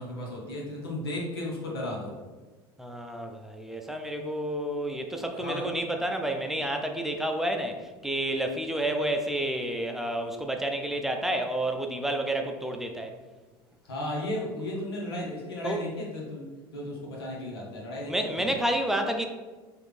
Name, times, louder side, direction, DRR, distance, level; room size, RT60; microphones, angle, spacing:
voice 1, 0.0-2.1 5.3-5.7 13.9-16.4 16.7-18.6, left 1 dB, 90° left, -2 dB, 1.1 m, -35 dB
voice 2, 2.8-13.1 15.6-15.8 18.1-19.3, right 1 dB, 5° right, 3 dB, 0.5 m, -30 dB
4.7 x 2.6 x 3.2 m, 1.3 s
hypercardioid pair, 85°, 12 cm